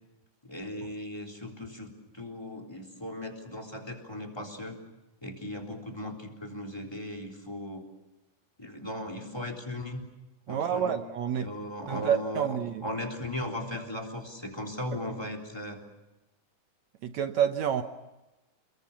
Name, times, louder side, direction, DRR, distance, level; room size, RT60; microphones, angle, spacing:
voice 1, 0.4-4.8 5.2-7.8 8.6-10.1 10.5-11.0 11.4-15.8, left 1 dB, 5° left, 1 dB, 3.3 m, -37 dB
voice 2, 10.5-11.5 11.9-12.8 17.0-17.8, right 9 dB, 65° right, 8 dB, 2.0 m, -28 dB
29.0 x 22.0 x 7.2 m, 1.0 s
omnidirectional pair, 3.9 m